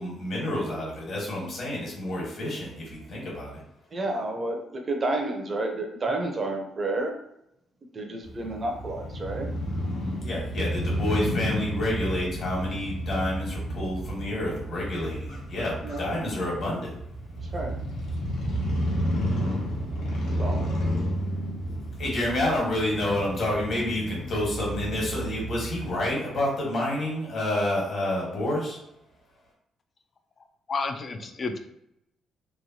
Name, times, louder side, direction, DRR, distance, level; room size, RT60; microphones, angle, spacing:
voice 1, 0.0-3.6 10.2-16.9 22.0-28.8, left 1 dB, 55° left, -3 dB, 1.3 m, -29 dB
voice 2, 3.9-7.1 7.9-9.5 15.8-16.2 17.5-17.8 20.4-20.7, right 2 dB, 40° right, 2 dB, 0.6 m, -30 dB
Crow / Motorcycle, 8.2-26.1, equal, 85° left, 0.7 m, -31 dB
voice 3, 30.7-31.6, left 4 dB, 40° left, 6 dB, 0.3 m, -30 dB
3.0 x 2.2 x 2.7 m, 0.79 s
cardioid pair, 90°, 0 cm